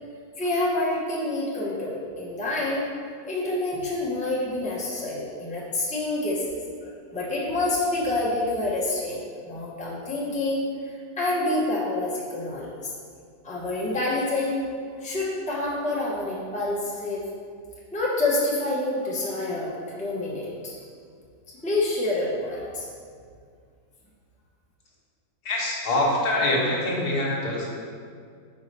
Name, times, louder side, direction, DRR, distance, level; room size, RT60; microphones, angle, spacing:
voice 1, 0.4-2.9 3.2-10.6 11.2-12.9 13.4-14.6 15.0-17.2 17.9-20.8 21.6-22.9, left 2 dB, 5° left, -6 dB, 0.8 m, -27 dB
voice 2, 25.4-27.6, left 1 dB, 80° left, -3 dB, 1.7 m, -24 dB
4.7 x 4.2 x 5.4 m, 2.1 s
omnidirectional pair, 1.6 m